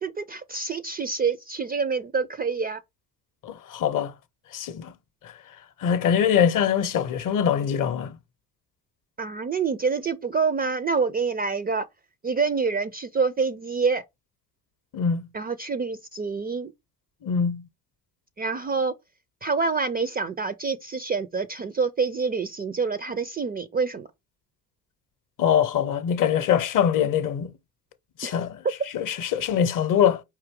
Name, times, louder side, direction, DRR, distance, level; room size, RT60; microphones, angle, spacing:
voice 1, 0.0-2.8 9.2-11.9 12.2-14.0 15.3-16.7 18.4-18.9 19.4-24.1 28.2-28.3, right 5 dB, 20° right, 0.4 m, -27 dB
voice 2, 3.4-4.1 4.5-4.9 5.2-5.3 5.8-8.2 14.9-15.3 17.2-17.7 25.4-27.5 28.2-28.6 28.9-30.2, left 8 dB, 45° left, 0.7 m, -23 dB
4.9 x 2.6 x 3.5 m
hypercardioid pair, 65°, 45 cm